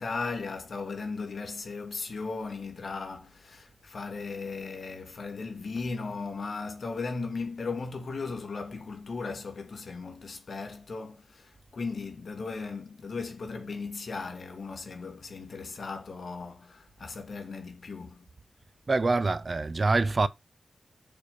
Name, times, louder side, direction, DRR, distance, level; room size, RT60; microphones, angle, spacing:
voice 1, 0.0-18.3, left 4 dB, 70° left, 2.3 m, -37 dB
voice 2, 18.9-20.3, right 3 dB, 45° right, 0.6 m, -25 dB
6.8 x 4.9 x 6.9 m
wide cardioid pair, 105°, 0 cm